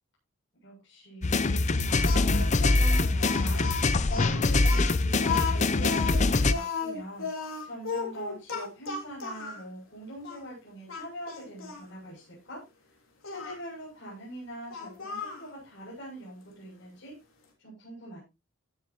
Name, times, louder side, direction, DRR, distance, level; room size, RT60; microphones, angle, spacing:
voice 1, 0.6-3.7 4.0-12.6 13.2-17.2 17.6-18.2, equal, 60° left, -5 dB, 7.8 m, -43 dB
sound 1, 1.2-6.5, left 2 dB, 35° left, 0.6 m, -24 dB
Speech, 2.0-9.6 10.2-10.4 10.9-11.8 13.2-13.6 14.7-15.5, left 5 dB, 85° left, 3.7 m, -35 dB
17.0 x 7.4 x 3.0 m, 0.26 s
head